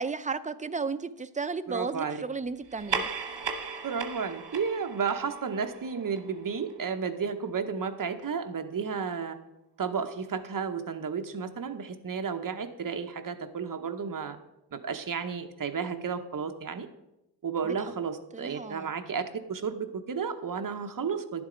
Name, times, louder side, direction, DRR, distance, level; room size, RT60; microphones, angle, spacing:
voice 1, 0.0-3.1 18.3-18.9, right 4 dB, 20° right, 12 dB, 0.3 m, -34 dB
voice 2, 1.7-2.2 3.8-9.4 9.8-14.4 14.7-16.9 17.4-19.2 19.5-21.4, right 6 dB, 50° right, 7 dB, 0.9 m, -32 dB
sound 1, 2.6-7.5, right 5 dB, 85° right, 1.1 m, -37 dB
10.5 x 7.2 x 5.0 m, 0.89 s
wide cardioid pair, 140°, 42 cm